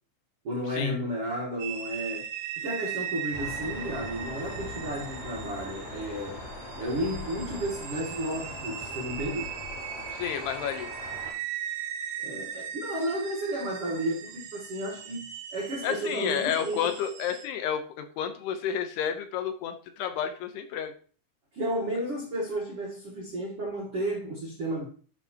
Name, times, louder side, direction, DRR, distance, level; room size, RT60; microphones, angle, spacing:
voice 1, 0.4-6.4 6.8-9.5 12.2-16.9 21.5-24.8, right 1 dB, 70° right, 1.4 m, -33 dB
sound 1, 1.6-17.5, right 9 dB, 85° right, 1.9 m, -39 dB
Thunder, 3.3-11.3, left 2 dB, 50° left, 3.4 m, -41 dB
voice 2, 10.1-10.9 15.8-20.9, left 9 dB, 80° left, 2.7 m, -31 dB
11.0 x 5.9 x 2.9 m
omnidirectional pair, 5.0 m